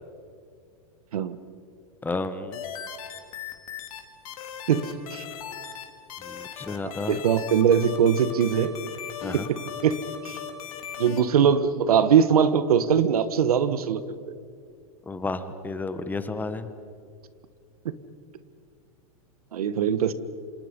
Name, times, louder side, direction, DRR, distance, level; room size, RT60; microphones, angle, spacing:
voice 1, 2.0-2.6 6.2-7.2 9.2-9.5 15.1-16.7, left 3 dB, 10° left, 11 dB, 1.1 m, -32 dB
sound 1, 2.5-4.0 4.3-5.8 6.1-11.2, left 9 dB, 70° left, 3.3 m, -38 dB
voice 2, 4.7-5.2 6.8-8.8 9.3-10.0 10.2-10.4 11.0-14.0 19.5-20.1, right 7 dB, 85° right, 14 dB, 1.4 m, -22 dB
28.5 x 26.5 x 5.3 m, 2.2 s
hypercardioid pair, 135°, 19 cm